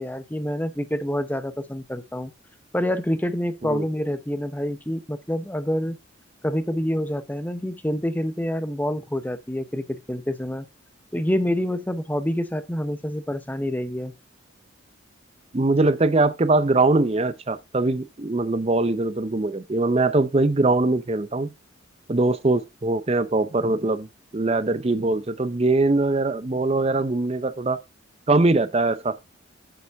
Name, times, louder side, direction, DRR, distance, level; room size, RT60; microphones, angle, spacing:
voice 1, 0.0-2.3 2.7-6.0 6.4-10.7 11.1-14.1, equal, 10° left, 0.6 m, -27 dB
voice 2, 15.5-21.5 22.1-24.1 24.3-27.8 28.3-29.2, right 2 dB, 30° right, 0.6 m, -22 dB
9.1 x 7.0 x 3.5 m
head